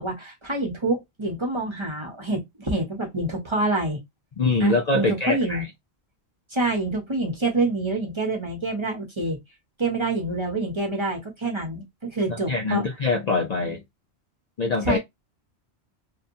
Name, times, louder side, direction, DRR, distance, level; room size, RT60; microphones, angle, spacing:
voice 1, 0.0-4.0 4.6-5.6 6.5-9.4 9.8-12.8 14.8-15.0, right 2 dB, 30° right, 0.8 m, -27 dB
voice 2, 4.4-5.7 12.5-13.8 14.6-15.0, left 3 dB, 50° left, 0.5 m, -23 dB
2.7 x 2.2 x 2.6 m
omnidirectional pair, 1.1 m